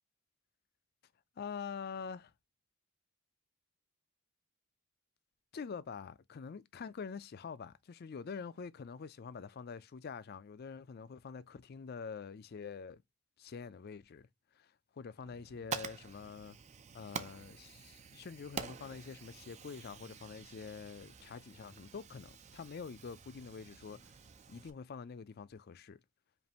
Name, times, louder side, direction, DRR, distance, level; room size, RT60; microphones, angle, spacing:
voice 1, 1.4-2.3 5.5-13.0 13.4-14.3 14.5-16.6 16.9-24.1 24.5-26.0, left 5 dB, 50° left, 0.4 m, -46 dB
Fire, 15.3-24.7, right 6 dB, 35° right, 0.4 m, -48 dB
5.1 x 2.6 x 2.8 m
head